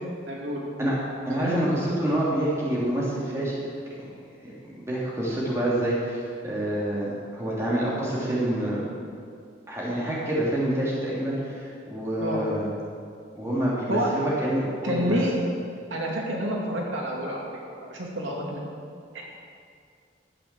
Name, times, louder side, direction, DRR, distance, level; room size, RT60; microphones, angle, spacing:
voice 1, 0.3-0.7 1.3-1.6 12.2-12.4 13.9-14.2 14.8-15.3 15.9-17.4 17.8-18.6 19.1-19.2, right 1 dB, 90° right, -2 dB, 2.5 m, -28 dB
voice 2, 1.3-3.6 4.2-8.8 9.7-12.7 13.4-15.2, right 1 dB, 15° right, -7 dB, 3.0 m, -27 dB
12.0 x 8.4 x 7.6 m, 2.3 s
head